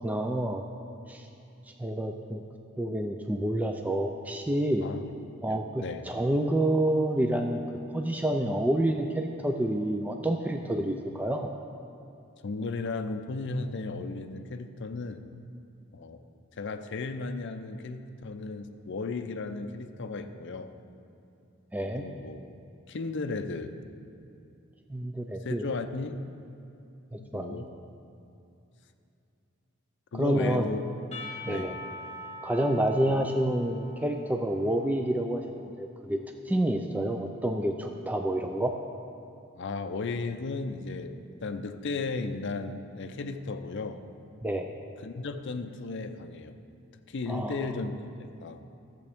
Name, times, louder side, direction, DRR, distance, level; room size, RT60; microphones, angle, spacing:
voice 1, 0.0-0.6 1.1-1.3 1.8-2.4 2.8-4.8 5.4-7.6 7.9-11.5 21.7-22.1 24.9-25.6 27.1-27.6 30.2-30.7 31.4-31.7 32.4-36.2 36.5-38.8 44.4-44.7 47.3-47.6, right 1 dB, 10° right, 4 dB, 0.3 m, -28 dB
voice 2, 5.5-6.1 12.4-15.2 15.9-16.2 16.6-20.7 21.8-22.4 22.9-23.7 25.4-26.2 27.2-27.7 30.1-30.8 31.5-31.7 33.1-33.3 39.6-41.1 41.4-44.0 45.0-46.6 47.1-48.6, left 3 dB, 60° left, 8 dB, 0.5 m, -35 dB
Percussion / Church bell, 31.1-35.1, left 1 dB, 30° left, 1.5 m, -43 dB
13.5 x 7.7 x 3.5 m, 2.7 s
head